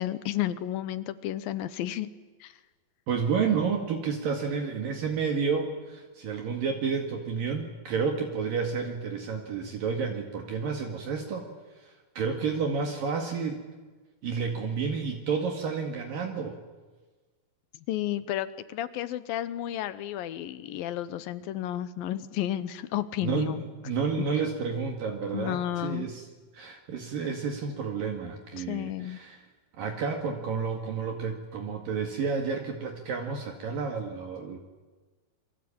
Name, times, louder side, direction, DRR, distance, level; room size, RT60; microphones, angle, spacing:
voice 1, 0.0-2.1 2.4-2.5 17.9-23.6 25.3-26.1 28.6-29.2, left 12 dB, 70° left, 14 dB, 2.6 m, -32 dB
voice 2, 3.1-11.5 11.8-13.6 14.2-16.6 23.2-26.2 26.5-29.5 29.8-34.6, right 5 dB, 60° right, 3 dB, 3.7 m, -30 dB
28.0 x 24.0 x 8.8 m, 1.3 s
omnidirectional pair, 4.6 m